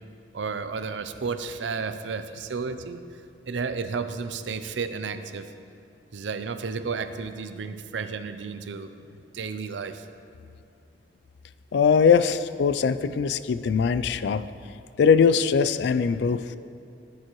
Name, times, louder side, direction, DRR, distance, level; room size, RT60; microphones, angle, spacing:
voice 1, 0.3-3.0 3.5-5.5 6.1-8.9 9.3-10.1, right 5 dB, 75° right, 10 dB, 0.5 m, -32 dB
voice 2, 11.7-14.5 15.0-16.6, left 6 dB, 65° left, 14 dB, 0.3 m, -21 dB
14.0 x 7.2 x 3.1 m, 2.6 s
head